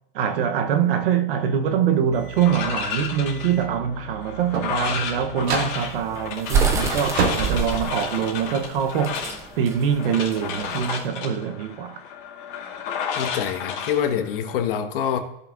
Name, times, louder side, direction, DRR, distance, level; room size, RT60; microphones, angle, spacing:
voice 1, 0.1-9.3 9.6-12.0, right 8 dB, 60° right, 1.0 m, -24 dB
sound 1, 2.0-8.6, right 4 dB, 90° right, 2.4 m, -32 dB
sound 2, 2.4-14.7, left 7 dB, 45° left, 2.5 m, -32 dB
sound 3, 5.5-11.0, right 6 dB, 10° right, 0.4 m, -27 dB
voice 2, 13.1-15.2, left 8 dB, 60° left, 1.4 m, -25 dB
16.5 x 5.6 x 2.6 m
supercardioid pair, 160°, 31 cm